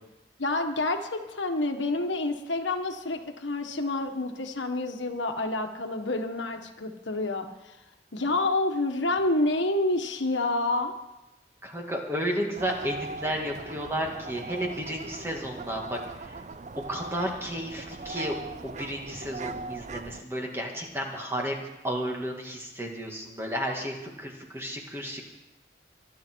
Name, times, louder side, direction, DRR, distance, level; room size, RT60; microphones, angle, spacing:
voice 1, 0.4-7.8 8.1-10.9, left 2 dB, 85° left, 4 dB, 1.6 m, -28 dB
voice 2, 11.6-16.4 16.9-18.4 18.6-25.2, equal, 15° right, 0 dB, 2.2 m, -32 dB
sound 1, 12.6-20.2, right 3 dB, 40° right, 0.5 m, -40 dB
24.5 x 11.0 x 4.7 m, 0.98 s
head